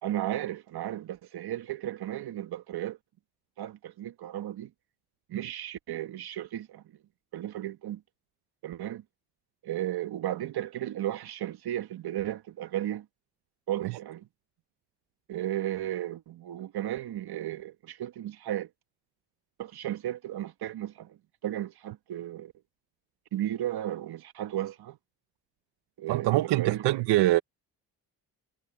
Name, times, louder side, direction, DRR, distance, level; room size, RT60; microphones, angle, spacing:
voice 1, 0.0-3.0 3.6-4.7 5.3-6.8 7.3-8.0 8.6-9.0 9.6-13.1 13.7-14.3 15.3-18.7 19.6-22.5 23.3-25.0 26.0-26.8, right 12 dB, 70° right, 1.8 m, -34 dB
voice 2, 26.1-27.4, right 16 dB, 90° right, 1.3 m, -24 dB
supercardioid pair, 60°, 40 cm